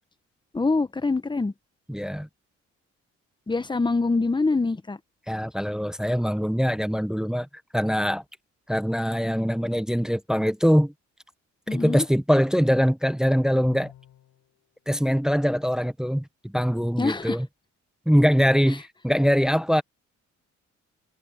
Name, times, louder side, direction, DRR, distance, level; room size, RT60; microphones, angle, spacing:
voice 1, 0.5-1.5 3.5-5.0 11.7-12.0 17.0-17.4, left 3 dB, 15° left, 1.1 m, -24 dB
voice 2, 1.9-2.3 5.3-7.5 7.7-8.2 8.7-10.9 11.7-13.9 14.9-17.5 18.1-19.8, equal, ahead, 0.8 m, -23 dB
Bowed string instrument, 13.6-14.5, left 11 dB, 75° left, 5.1 m, -48 dB
cardioid pair, 90°, 30 cm